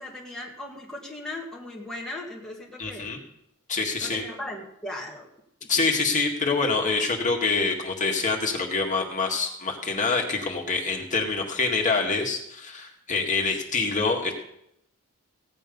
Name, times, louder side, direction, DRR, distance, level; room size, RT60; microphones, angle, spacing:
voice 1, 0.0-3.2 4.0-5.3 5.6-5.7, left 1 dB, 5° left, -2 dB, 1.6 m, -38 dB
voice 2, 2.8-3.2 3.7-4.2 5.7-14.3, left 4 dB, 35° left, 1 dB, 1.9 m, -26 dB
16.5 x 9.0 x 5.4 m, 0.76 s
head